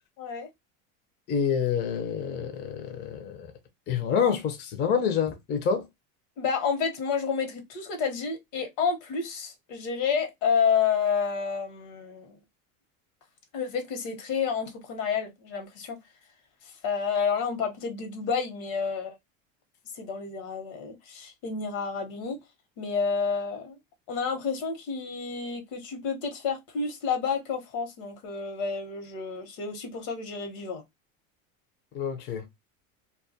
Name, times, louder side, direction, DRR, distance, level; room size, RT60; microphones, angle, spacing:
voice 1, 0.2-0.5 6.4-12.4 13.5-16.0 16.8-19.1 20.0-22.4 22.8-23.8 24.1-30.8, left 6 dB, 70° left, 1.0 m, -30 dB
voice 2, 1.3-3.5 3.9-5.9 31.9-32.5, left 7 dB, 25° left, 0.5 m, -27 dB
2.3 x 2.2 x 2.6 m
supercardioid pair, 120°, 40 cm